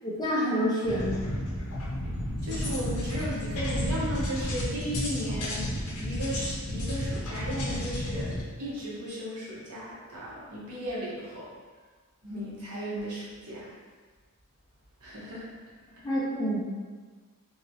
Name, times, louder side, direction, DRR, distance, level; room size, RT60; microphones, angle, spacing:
voice 1, 0.0-1.2 16.0-16.6, equal, 20° left, -7 dB, 0.7 m, -27 dB
sound 1, 0.8-8.4, equal, 80° left, 0.7 m, -32 dB
voice 2, 2.4-11.5 12.2-13.7 15.0-15.5, equal, 85° right, -7 dB, 1.1 m, -36 dB
3.0 x 2.8 x 2.7 m, 1.4 s
head